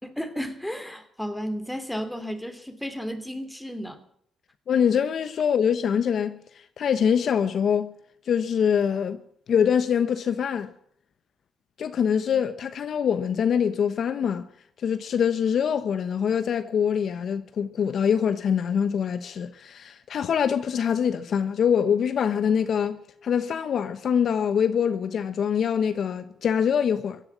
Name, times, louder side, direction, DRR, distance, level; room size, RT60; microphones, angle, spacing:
voice 1, 0.0-4.0, equal, 5° left, 2.9 m, -33 dB
voice 2, 4.7-6.4 6.8-7.9 8.3-9.2 9.5-10.7 11.8-14.5 14.8-27.2, left 7 dB, 60° left, 1.1 m, -24 dB
16.5 x 10.5 x 8.4 m
cardioid pair, 90°, 0 cm